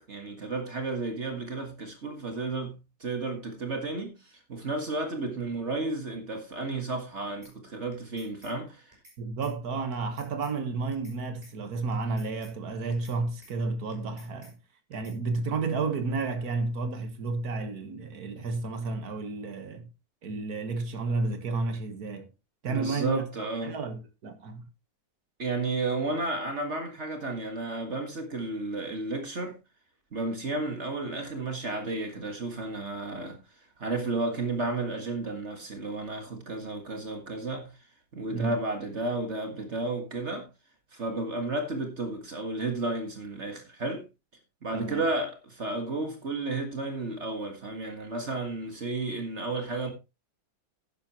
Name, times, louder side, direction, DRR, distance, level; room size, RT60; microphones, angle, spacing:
voice 1, 0.1-2.7 3.0-9.0 22.7-23.8 25.4-29.6 30.1-33.4 33.8-37.7 38.1-40.5 40.9-44.1 44.6-49.9, right 2 dB, 45° right, 1.9 m, -32 dB
sound 1, 7.4-7.5 7.9-8.5 8.9-9.2 9.4-9.5 9.9-10.5 10.9-11.2 11.4-11.5 11.9-12.5 12.9-13.2 13.4-13.5 13.9-14.5 14.9-15.2, equal, 25° right, 4.9 m, -54 dB
voice 2, 9.2-14.6 14.9-19.9 20.2-22.3 22.6-24.6 38.3-38.5 44.7-45.1, right 3 dB, 75° right, 2.0 m, -31 dB
11.5 x 10.5 x 3.0 m
omnidirectional pair, 1.7 m